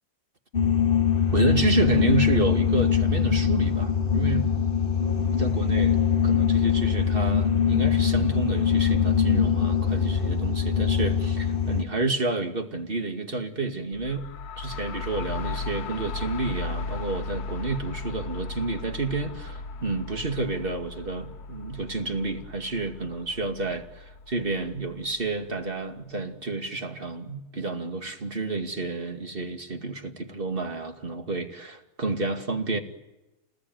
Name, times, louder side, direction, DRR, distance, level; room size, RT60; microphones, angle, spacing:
sound 1, 0.5-11.8, left 7 dB, 40° left, 1.0 m, -23 dB
voice 1, 1.3-4.5 5.3-14.3 14.6-32.8, right 3 dB, 30° right, 2.5 m, -30 dB
sound 2, 13.9-25.6, left 4 dB, 70° left, 1.6 m, -37 dB
29.5 x 19.5 x 9.5 m
omnidirectional pair, 1.8 m